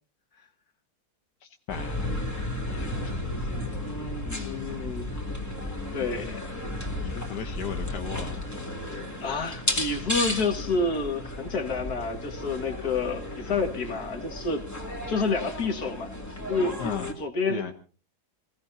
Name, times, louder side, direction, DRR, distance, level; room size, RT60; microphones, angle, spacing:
voice 1, 1.7-4.8 5.9-6.4 7.0-8.5 8.8-9.0 13.5-13.7 16.8-17.1 17.5-17.7, left 8 dB, 85° left, 5 dB, 1.6 m, -38 dB
sound 1, 1.7-17.1, left 1 dB, 10° left, 2.5 m, -34 dB
voice 2, 3.8-5.1 5.9-6.6 9.2-14.6 15.1-16.1 16.5-16.8 17.2-17.7, left 3 dB, 65° left, 6 dB, 2.3 m, -29 dB
27.5 x 17.0 x 2.7 m, 0.37 s
omnidirectional pair, 1.8 m